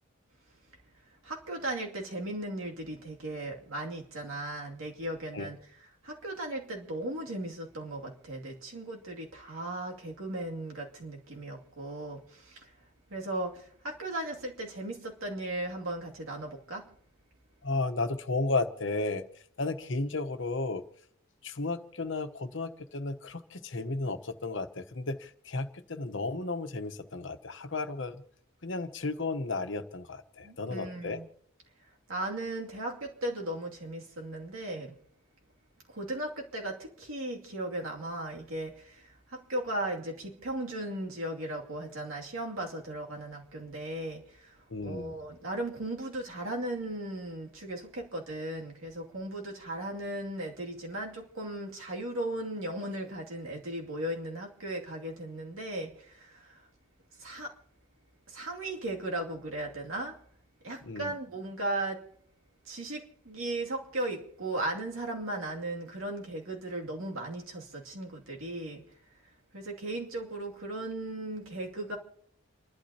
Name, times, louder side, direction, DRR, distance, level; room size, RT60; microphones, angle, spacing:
voice 1, 1.2-5.6 6.0-12.7 13.1-16.9 30.4-31.3 32.1-35.0 35.9-56.7 57.2-57.6 58.3-60.2 60.6-62.1 62.6-68.8 69.5-72.0, right 1 dB, 90° right, 2.6 m, -37 dB
voice 2, 17.6-20.8 21.4-28.2 28.6-31.2 44.7-45.2 60.8-61.1, left 3 dB, 65° left, 1.0 m, -33 dB
29.5 x 11.5 x 2.9 m
head